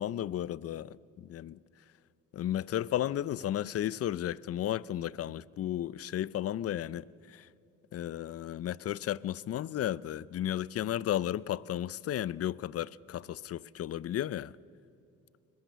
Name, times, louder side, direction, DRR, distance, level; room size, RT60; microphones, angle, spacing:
voice 1, 0.0-1.6 2.3-7.5 7.9-14.6, left 12 dB, 50° left, 0.5 m, -34 dB
21.5 x 20.5 x 6.9 m
cardioid pair, 90°, 30 cm